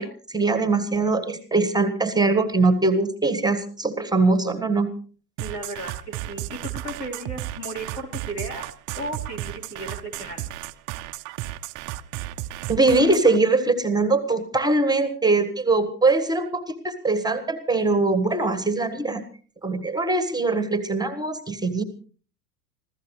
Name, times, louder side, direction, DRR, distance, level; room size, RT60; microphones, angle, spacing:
voice 1, 0.0-4.9 12.7-19.2 19.6-21.8, right 3 dB, 10° right, 11 dB, 1.5 m, -22 dB
voice 2, 5.4-8.7 9.0-10.5, right 1 dB, 90° left, 2 dB, 4.2 m, -35 dB
sound 1, 5.4-13.4, right 16 dB, 40° right, 0.8 m, -33 dB
25.5 x 15.5 x 3.2 m, 0.41 s
hypercardioid pair, 90°, 46 cm